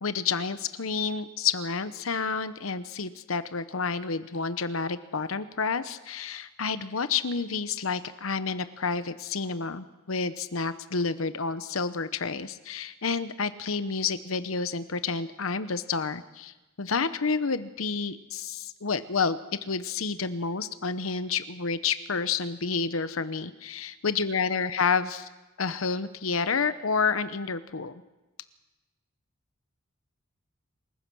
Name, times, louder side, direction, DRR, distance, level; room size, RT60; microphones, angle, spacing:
voice 1, 0.0-19.4 19.7-25.3 25.6-27.9, left 5 dB, 85° left, 12 dB, 1.0 m, -29 dB
27.5 x 15.5 x 6.2 m, 1.1 s
head